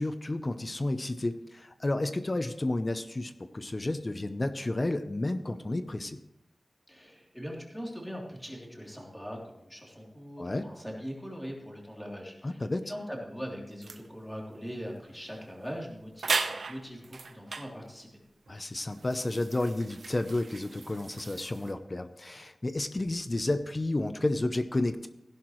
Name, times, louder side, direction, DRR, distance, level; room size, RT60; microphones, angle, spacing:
voice 1, 0.0-6.2 10.4-10.6 12.4-12.8 18.5-25.1, left 2 dB, 35° left, 10 dB, 0.7 m, -31 dB
voice 2, 6.9-18.1, equal, 5° left, -2 dB, 3.3 m, -41 dB
sound 1, 13.8-14.1 15.2-15.4 15.6-15.7 16.2-17.7 18.5-21.7, right 4 dB, 80° right, 0.9 m, -36 dB
16.0 x 11.0 x 3.2 m, 0.86 s
wide cardioid pair, 80°, 0 cm